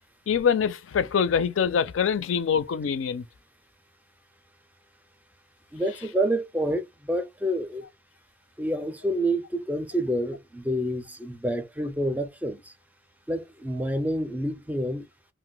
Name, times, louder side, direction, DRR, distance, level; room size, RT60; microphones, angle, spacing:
voice 1, 0.3-3.2, left 7 dB, 75° left, 0.4 m, -24 dB
voice 2, 5.7-7.9 8.6-12.7 13.3-15.1, right 1 dB, 10° right, 0.4 m, -28 dB
2.5 x 2.1 x 3.7 m
head